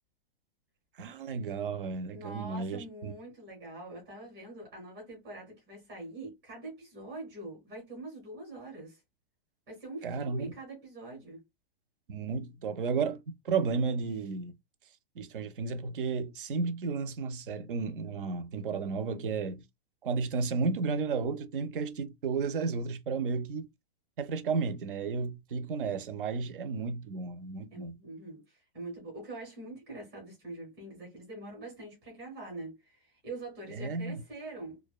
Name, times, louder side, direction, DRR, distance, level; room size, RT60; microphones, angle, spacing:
voice 1, 1.0-3.1 10.0-10.5 12.1-14.5 15.2-19.6 20.0-23.7 24.2-28.0 33.7-34.2, right 5 dB, 60° right, 0.5 m, -33 dB
voice 2, 2.1-9.0 9.7-11.4 27.7-34.8, right 2 dB, 5° right, 0.5 m, -44 dB
2.5 x 2.1 x 2.3 m
hypercardioid pair, 175°, 30 cm